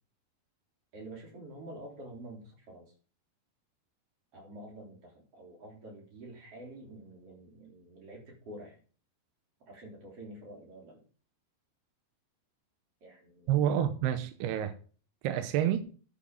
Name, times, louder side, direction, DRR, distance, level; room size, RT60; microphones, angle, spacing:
voice 1, 0.9-2.9 4.3-8.8 9.7-11.0 13.0-13.5, right 1 dB, 35° right, 4.0 m, -48 dB
voice 2, 13.5-14.8 15.2-15.8, right 10 dB, 80° right, 2.8 m, -28 dB
11.0 x 7.0 x 5.3 m
omnidirectional pair, 4.8 m